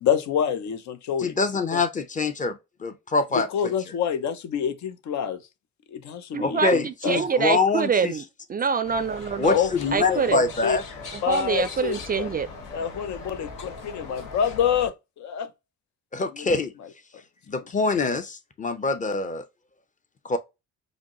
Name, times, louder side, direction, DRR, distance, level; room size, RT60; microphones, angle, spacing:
voice 1, 0.0-1.4 1.7-1.8 3.3-5.4 5.9-7.2 9.5-9.7 10.0-10.8 11.2-12.3 12.7-15.5 16.2-16.5 16.8-16.9, left 8 dB, 70° left, 0.6 m, -27 dB
voice 2, 1.2-3.5 6.4-8.1 9.4-10.8 16.1-16.7 17.5-19.5 20.2-20.4, left 3 dB, 25° left, 0.7 m, -25 dB
voice 3, 6.3-9.5 9.9-10.5 11.1-12.5, right 6 dB, 30° right, 0.4 m, -25 dB
sound 1, 8.8-14.9, left 4 dB, 85° left, 1.3 m, -40 dB
5.0 x 2.1 x 2.9 m
cardioid pair, 90°, 30 cm